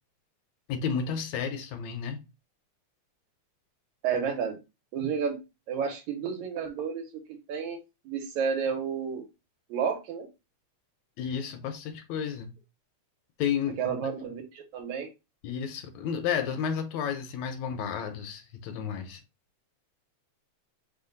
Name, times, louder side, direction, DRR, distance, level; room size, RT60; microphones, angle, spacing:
voice 1, 0.7-2.2 11.2-12.5 13.4-14.1 15.4-19.2, left 7 dB, 80° left, 1.9 m, -32 dB
voice 2, 4.0-4.6 4.9-5.4 5.7-7.8 8.1-9.3 9.7-10.3 13.8-15.1, right 6 dB, 80° right, 2.4 m, -31 dB
4.9 x 2.3 x 3.8 m
omnidirectional pair, 3.3 m